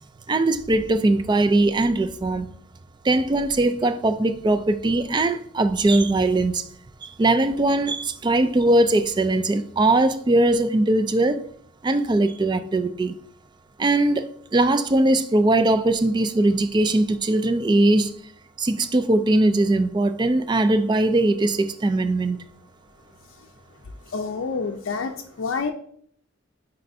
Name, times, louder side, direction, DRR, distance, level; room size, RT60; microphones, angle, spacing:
voice 1, 0.3-2.5 3.0-6.6 7.0-11.4 11.8-13.1 13.8-18.1 18.6-22.4, right 2 dB, 20° right, 0.3 m, -20 dB
voice 2, 24.1-25.7, left 4 dB, 80° left, 0.5 m, -28 dB
9.4 x 4.2 x 2.6 m
head